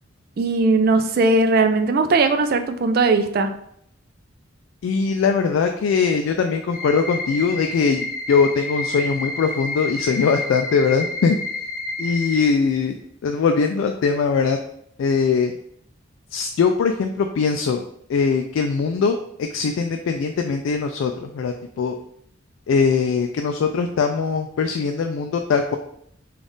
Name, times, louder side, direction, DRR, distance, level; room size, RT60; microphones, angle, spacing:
voice 1, 0.4-3.5, right 3 dB, 50° right, 8 dB, 0.4 m, -18 dB
voice 2, 4.8-11.4 12.0-14.6 15.0-15.6 16.3-17.8 18.1-21.9 22.7-25.8, left 5 dB, 80° left, 5 dB, 0.3 m, -21 dB
sound 1, 6.7-12.5, left 2 dB, 10° right, 0.8 m, -29 dB
3.5 x 2.4 x 3.9 m, 0.70 s
head